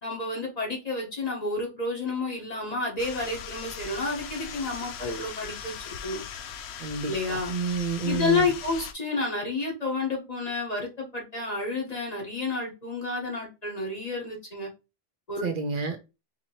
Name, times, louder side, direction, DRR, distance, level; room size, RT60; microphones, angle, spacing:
voice 1, 0.0-6.2 7.1-7.5 8.0-14.7 15.3-15.5, left 3 dB, 40° left, 1.3 m, -30 dB
sound 1, 3.0-8.9, left 7 dB, 90° left, 0.8 m, -39 dB
voice 2, 6.8-8.5 15.4-16.0, right 5 dB, 60° right, 0.7 m, -30 dB
4.2 x 2.9 x 2.9 m
omnidirectional pair, 1.1 m